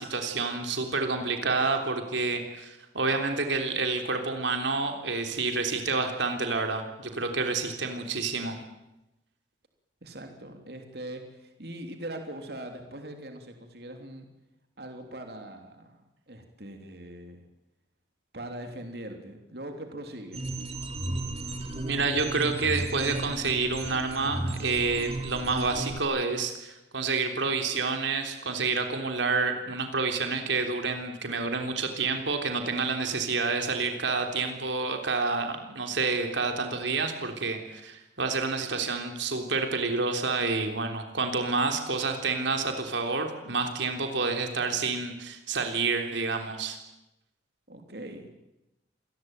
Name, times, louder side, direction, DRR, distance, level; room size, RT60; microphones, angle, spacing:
voice 1, 0.0-8.6 21.8-46.8, right 4 dB, 80° right, 4 dB, 3.4 m, -29 dB
voice 2, 10.0-14.3 14.8-17.4 18.3-20.4 47.7-48.4, right 1 dB, 55° right, 5 dB, 3.3 m, -41 dB
sound 1, 20.3-26.0, right 1 dB, 30° right, 3.5 m, -34 dB
27.0 x 19.5 x 9.3 m, 0.95 s
head